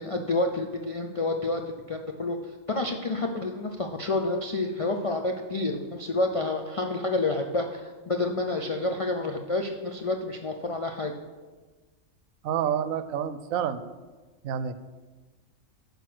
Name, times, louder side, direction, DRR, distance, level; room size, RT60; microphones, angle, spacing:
voice 1, 0.0-1.6 1.9-2.4 2.7-11.1, left 2 dB, 60° left, 3 dB, 0.3 m, -29 dB
voice 2, 12.4-13.8 14.4-14.7, right 9 dB, 85° right, 13 dB, 1.0 m, -28 dB
9.3 x 5.3 x 6.0 m, 1.3 s
omnidirectional pair, 1.4 m